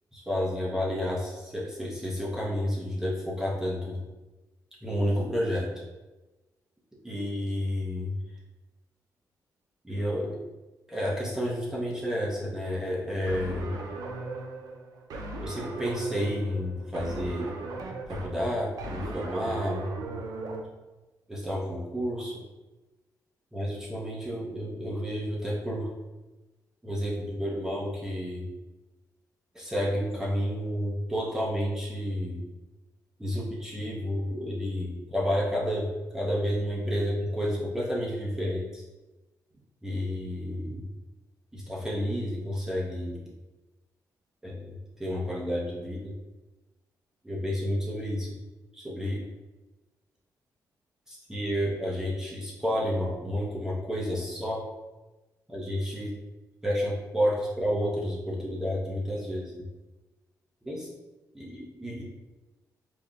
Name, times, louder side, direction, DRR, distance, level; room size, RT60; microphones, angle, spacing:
voice 1, 0.1-4.0 4.8-5.7 7.0-8.1 9.8-10.4 10.9-13.7 15.4-17.5 18.1-19.9 21.3-22.4 23.5-25.9 26.8-28.5 29.5-32.4 33.2-38.8 39.8-40.9 41.5-43.2 44.4-46.1 47.2-48.4 48.7-49.2 51.1-54.6 55.5-56.2 56.6-59.6 60.6-60.9 61.3-62.0, equal, 10° right, -6 dB, 0.6 m, -30 dB
sound 1, 13.3-20.6, right 2 dB, 70° right, 0.4 m, -37 dB
5.1 x 2.0 x 2.3 m, 1.1 s
wide cardioid pair, 150°, 7 cm